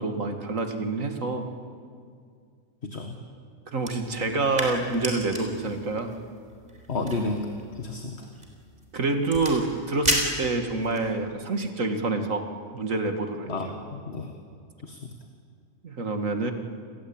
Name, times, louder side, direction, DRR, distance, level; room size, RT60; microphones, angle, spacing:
voice 1, 0.0-1.5 3.7-6.1 8.9-12.5 12.7-13.7 15.8-16.5, right 3 dB, 70° right, 6 dB, 2.5 m, -27 dB
voice 2, 2.8-3.2 6.9-7.5 7.7-8.3 13.5-14.3 14.8-15.1, left 3 dB, 50° left, 4 dB, 2.0 m, -31 dB
sound 1, 3.8-11.1, right 1 dB, 30° right, 4.7 m, -34 dB
30.0 x 21.0 x 8.8 m, 2.2 s
omnidirectional pair, 1.4 m